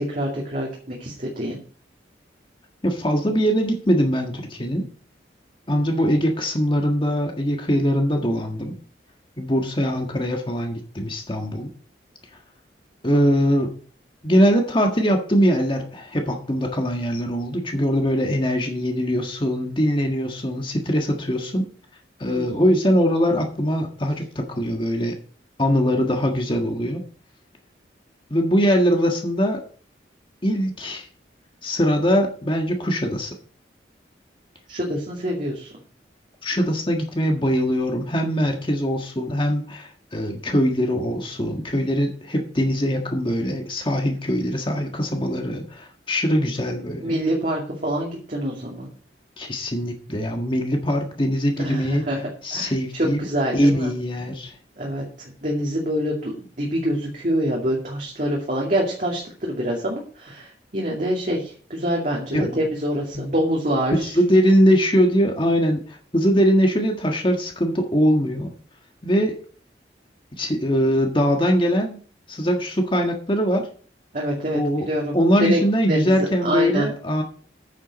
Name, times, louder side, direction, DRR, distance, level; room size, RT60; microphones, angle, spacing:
voice 1, 0.0-1.6 5.7-6.0 22.3-22.6 34.7-35.7 47.0-48.9 51.6-53.9 54.8-64.1 74.1-74.6 74.9-75.2 75.5-75.6 75.9-76.9, equal, 45° right, -2 dB, 2.5 m, -26 dB
voice 2, 2.8-4.8 5.7-8.7 9.4-11.7 13.0-13.7 14.2-21.7 22.2-25.1 25.6-27.0 28.3-29.6 30.4-31.0 31.6-33.3 36.4-47.2 49.4-52.0 52.4-53.2 53.5-54.5 62.3-62.6 63.1-63.3 64.1-68.5 69.0-69.4 70.3-72.0 72.3-73.7 74.5-74.9 75.1-77.2, equal, 30° left, 3 dB, 1.6 m, -22 dB
9.4 x 7.4 x 6.3 m, 0.43 s
head